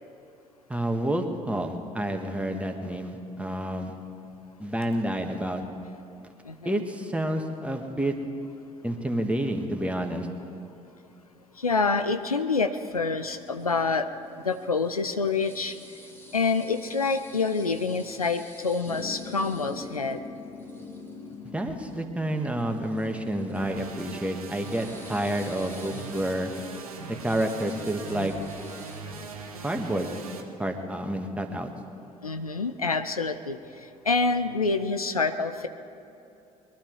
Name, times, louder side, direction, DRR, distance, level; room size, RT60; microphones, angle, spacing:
voice 1, 0.7-3.9 4.6-5.6 6.7-8.2 8.8-10.3 21.5-26.5 27.1-28.3 29.6-30.1 30.6-31.7, right 1 dB, 5° right, 4 dB, 1.7 m, -29 dB
voice 2, 6.4-6.8 11.6-14.1 14.4-15.8 16.3-20.2 32.2-35.7, left 4 dB, 90° left, 10 dB, 0.4 m, -27 dB
sound 1, 12.9-29.0, left 2 dB, 10° left, 2.0 m, -46 dB
sound 2, 23.5-30.4, right 5 dB, 80° right, 1.1 m, -41 dB
22.0 x 12.0 x 4.7 m, 2.8 s
figure-of-eight pair, 50°, 18 cm